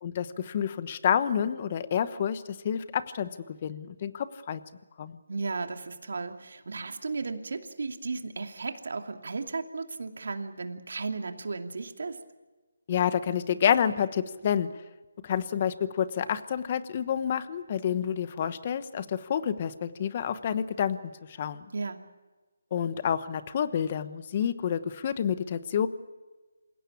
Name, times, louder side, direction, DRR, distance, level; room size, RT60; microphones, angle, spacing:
voice 1, 0.0-3.3 3.6-4.6 5.0-5.2 12.9-14.7 15.2-21.0 21.4-21.6 22.7-25.9, left 8 dB, 30° left, 14 dB, 1.0 m, -28 dB
voice 2, 5.3-12.2 21.7-22.0, right 4 dB, 65° right, 5 dB, 2.6 m, -35 dB
27.5 x 17.0 x 8.6 m, 1.2 s
hypercardioid pair, 170°, 0 cm